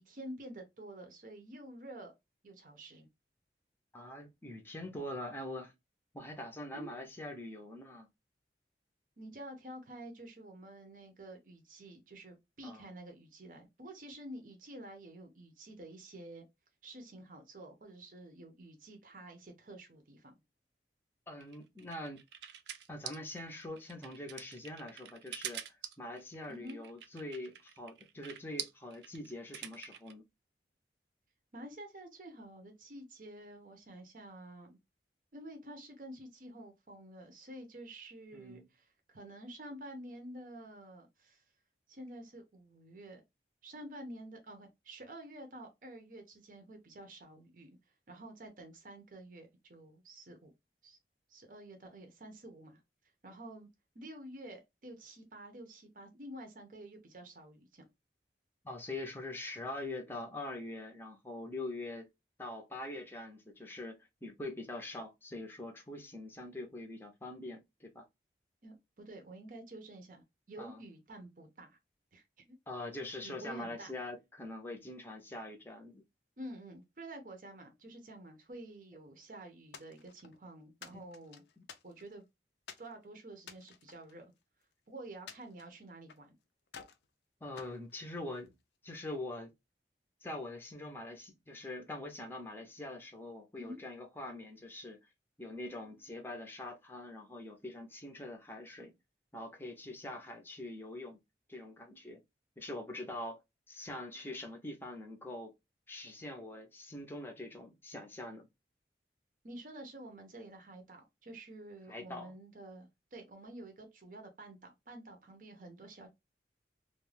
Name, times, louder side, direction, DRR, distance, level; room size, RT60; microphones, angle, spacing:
voice 1, 0.0-2.1 2.4-3.1 6.7-6.9 9.2-16.5 16.8-20.4 26.5-26.8 31.5-34.8 35.3-41.4 41.9-43.2 43.6-47.8 48.1-50.5 50.8-51.0 51.3-52.8 53.2-53.7 53.9-57.9 68.6-71.8 72.1-72.6 73.2-73.9 76.4-81.4 81.8-82.2 82.8-84.3 84.9-86.4 93.5-93.8 109.4-116.1, right 1 dB, 50° right, 0.7 m, -49 dB
voice 2, 3.9-5.7 6.1-8.1 12.6-12.9 21.3-22.2 22.9-30.2 38.3-38.7 58.6-62.1 62.4-68.1 70.6-70.8 72.7-76.0 80.9-81.0 81.6-81.7 87.4-88.5 88.8-89.5 90.2-95.1 95.4-98.9 99.3-101.2 101.5-102.2 102.6-103.4 103.7-105.5 105.9-108.5 111.9-112.3, left 1 dB, 15° left, 0.6 m, -44 dB
sound 1, 21.4-30.1, right 10 dB, 75° right, 0.4 m, -45 dB
sound 2, 79.7-80.4 80.8-82.2 82.7-82.9 83.4-84.7 85.3-86.3 86.7-87.1 87.6-88.6, left 7 dB, 75° left, 0.5 m, -53 dB
2.4 x 2.2 x 3.2 m
head